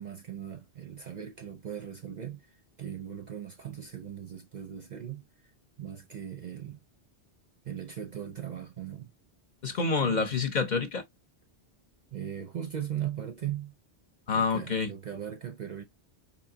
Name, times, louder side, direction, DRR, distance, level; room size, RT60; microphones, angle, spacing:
voice 1, 0.0-5.2 5.8-6.8 7.6-9.1 10.0-10.3 12.1-13.7 14.3-15.8, right 10 dB, 50° right, 0.6 m, -38 dB
voice 2, 9.6-11.0 14.3-14.9, left 4 dB, 45° left, 0.8 m, -27 dB
4.3 x 2.7 x 2.7 m
omnidirectional pair, 1.1 m